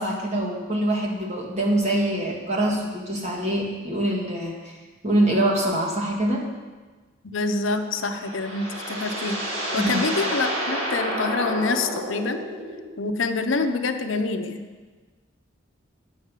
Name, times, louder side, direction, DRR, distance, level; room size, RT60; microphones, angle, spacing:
voice 1, 0.0-4.8 5.0-6.5 9.7-10.0, right 1 dB, 35° right, -2 dB, 1.8 m, -24 dB
voice 2, 7.2-9.4 9.7-12.4 13.0-14.6, left 3 dB, 75° left, 7 dB, 0.7 m, -26 dB
sound 1, 7.8-13.0, right 1 dB, 80° right, 2.3 m, -30 dB
9.0 x 6.0 x 8.2 m, 1.4 s
head